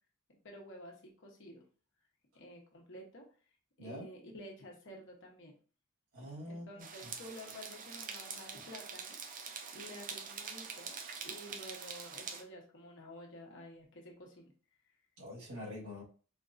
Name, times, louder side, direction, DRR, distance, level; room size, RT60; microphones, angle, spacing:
voice 1, 0.4-1.6 2.3-3.2 3.8-5.5 6.5-9.2 9.7-14.5, equal, 60° left, 0 dB, 1.1 m, -51 dB
voice 2, 6.1-7.1 15.2-16.0, left 1 dB, 85° right, -5 dB, 1.9 m, -45 dB
sound 1, 6.8-12.4, right 6 dB, 40° right, 0.5 m, -45 dB
4.4 x 2.7 x 2.5 m, 0.40 s
head